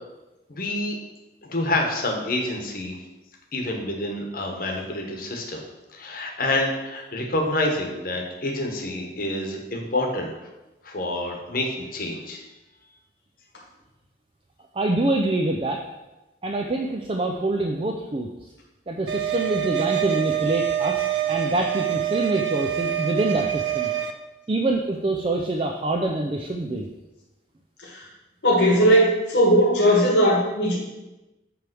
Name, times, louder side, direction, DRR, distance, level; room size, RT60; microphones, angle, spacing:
voice 1, 0.5-1.0 1.4-3.0 3.5-5.6 5.9-10.3 10.8-12.4, left 1 dB, 55° left, 1 dB, 1.2 m, -27 dB
voice 2, 14.7-15.8 16.4-18.3 18.9-23.9 24.5-26.9, right 2 dB, 30° right, 2 dB, 0.5 m, -25 dB
sound 1, 19.1-24.1, right 11 dB, 85° right, 0.6 m, -26 dB
voice 3, 28.4-30.8, equal, 85° left, -4 dB, 1.6 m, -18 dB
7.8 x 3.4 x 6.1 m, 1.1 s
head